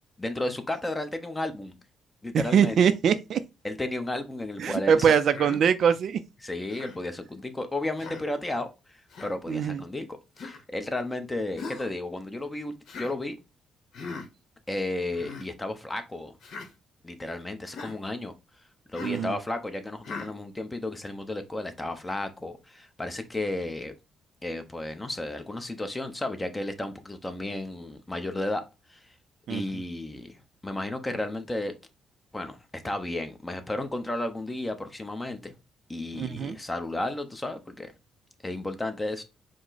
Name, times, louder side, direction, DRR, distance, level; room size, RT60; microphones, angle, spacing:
voice 1, 0.2-1.7 2.2-2.8 3.6-5.1 6.4-13.4 14.7-16.4 17.0-18.3 18.9-23.9 24.4-28.6 28.9-29.0 29.5-30.3 30.6-31.7 32.3-35.5 35.9-37.9 38.4-39.2, left 2 dB, 15° left, 0.8 m, -33 dB
voice 2, 2.3-3.4 4.6-6.2 9.5-9.8 19.0-19.3 29.5-29.6 36.1-36.6, right 7 dB, 65° right, 0.4 m, -23 dB
Human voice, 5.3-5.6 6.7-7.0 8.0-8.3 9.1-9.3 10.4-10.6 11.6-11.9 12.9-13.1 13.9-14.3 15.1-15.5 16.4-16.7 17.7-18.0 18.9-19.2 20.0-20.3, left 4 dB, 65° left, 1.0 m, -39 dB
4.8 x 2.1 x 4.0 m
cardioid pair, 90°, 0 cm